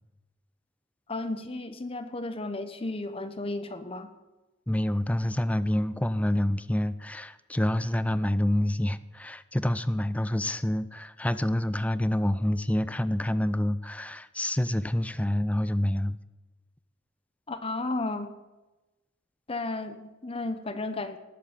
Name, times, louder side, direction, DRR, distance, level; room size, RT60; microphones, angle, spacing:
voice 1, 1.1-4.1 17.5-18.3 19.5-21.2, left 2 dB, 30° left, 9 dB, 0.9 m, -33 dB
voice 2, 4.7-16.2, left 1 dB, 5° left, 15 dB, 0.4 m, -27 dB
19.0 x 8.5 x 7.3 m, 1.1 s
head